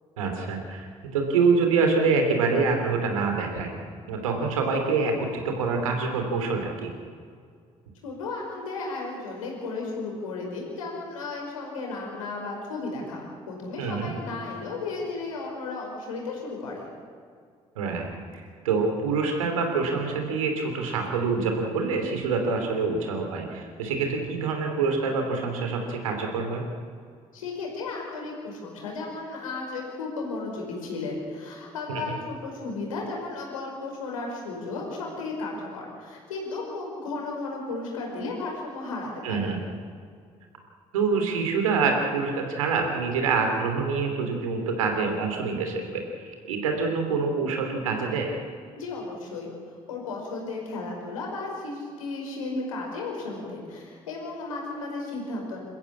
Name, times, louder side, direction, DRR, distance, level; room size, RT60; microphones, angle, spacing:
voice 1, 0.2-0.8 1.1-3.7 4.1-6.9 13.8-14.1 17.7-26.6 31.9-32.0 39.2-39.6 40.9-48.3, right 4 dB, 85° right, 3 dB, 3.1 m, -26 dB
voice 2, 8.0-16.9 27.3-39.6 48.8-49.5 49.9-55.6, left 3 dB, 85° left, -1 dB, 5.1 m, -34 dB
27.5 x 14.5 x 8.5 m, 2.2 s
hypercardioid pair, 45°, 17 cm